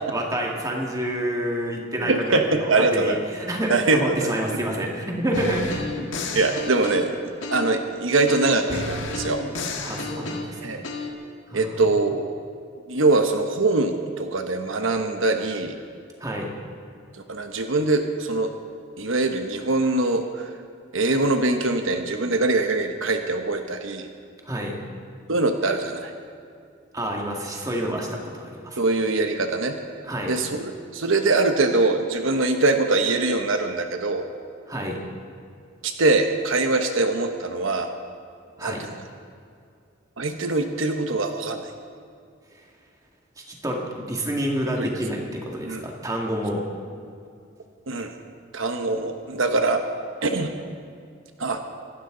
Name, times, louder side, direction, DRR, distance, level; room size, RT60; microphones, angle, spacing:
voice 1, 0.1-6.3 9.8-10.8 11.5-11.7 16.2-16.5 24.4-24.8 26.9-28.8 30.1-30.4 34.7-35.0 38.6-38.8 43.4-46.6, right 1 dB, 15° right, 0 dB, 2.0 m, -28 dB
voice 2, 2.0-3.2 3.7-4.3 6.3-7.2 7.5-9.4 10.6-10.8 11.5-12.3 12.9-15.8 17.1-18.5 19.0-20.5 20.9-24.1 25.3-26.1 28.8-29.8 30.3-34.3 35.8-37.9 38.6-38.9 40.2-41.7 44.8-44.9 45.6-45.8 47.9-48.1 48.5-49.8 50.2-50.5 51.4-51.6, right 2 dB, 75° right, 6 dB, 1.0 m, -23 dB
sound 1, 5.3-7.9 8.3-11.1, left 3 dB, 70° left, 1.7 m, -32 dB
25.0 x 12.5 x 3.9 m, 2.4 s
head